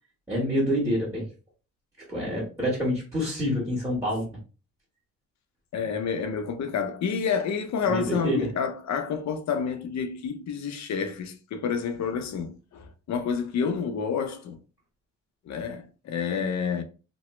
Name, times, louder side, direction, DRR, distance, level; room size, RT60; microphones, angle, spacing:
voice 1, 0.3-1.2 2.1-4.3 7.8-8.4, equal, 10° right, 1.6 m, -27 dB
voice 2, 5.7-14.6 15.5-16.8, left 6 dB, 65° left, 0.7 m, -29 dB
3.0 x 2.2 x 3.1 m
cardioid pair, 90°, 30 cm